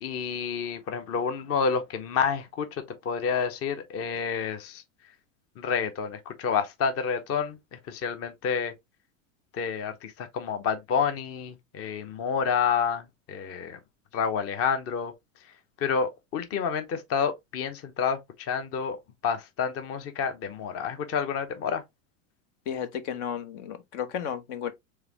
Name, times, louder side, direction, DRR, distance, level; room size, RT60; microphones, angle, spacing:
voice 1, 0.0-2.7 3.0-4.8 5.6-8.7 9.5-13.8 14.1-15.1 15.8-19.0 19.2-21.8, left 6 dB, 35° left, 0.9 m, -29 dB
voice 2, 22.7-24.7, left 8 dB, 65° left, 1.2 m, -33 dB
5.0 x 3.6 x 2.9 m
hypercardioid pair, 105°, 40 cm